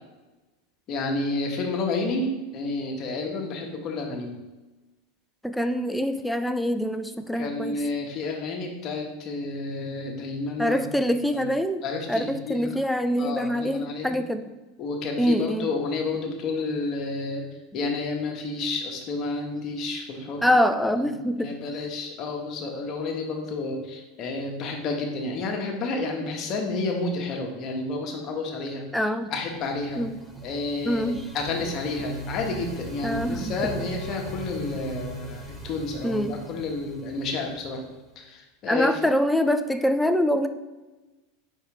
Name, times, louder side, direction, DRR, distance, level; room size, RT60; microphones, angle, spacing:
voice 1, 0.9-4.3 7.3-11.1 11.3-11.5 11.8-12.7 13.2-14.1 14.8-17.5 17.7-20.4 21.0-21.1 21.3-30.0 30.4-37.8 38.1-39.0, left 3 dB, 45° left, 1 dB, 1.4 m, -30 dB
voice 2, 5.4-7.8 10.6-14.4 15.2-15.7 20.4-21.5 28.9-29.3 30.0-30.2 30.8-31.2 33.0-33.5 36.0-36.4 38.7-40.5, equal, 5° left, 9 dB, 0.5 m, -24 dB
sound 1, 29.4-38.2, right 2 dB, 10° right, 1.4 m, -39 dB
4.7 x 4.7 x 4.9 m, 1.1 s
hypercardioid pair, 100°, 0 cm